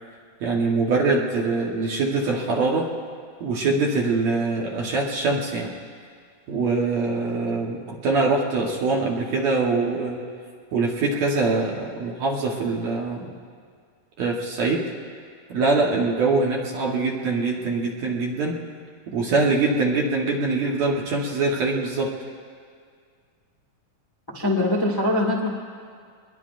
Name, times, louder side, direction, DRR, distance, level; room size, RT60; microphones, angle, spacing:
voice 1, 0.4-2.9 3.4-5.7 6.5-10.2 10.7-13.3 14.2-14.8 15.5-18.6 19.1-22.1, right 3 dB, 60° right, -1 dB, 2.2 m, -23 dB
voice 2, 24.3-25.5, left 1 dB, 10° left, -2 dB, 1.0 m, -22 dB
23.5 x 22.0 x 2.6 m, 2.1 s
omnidirectional pair, 4.0 m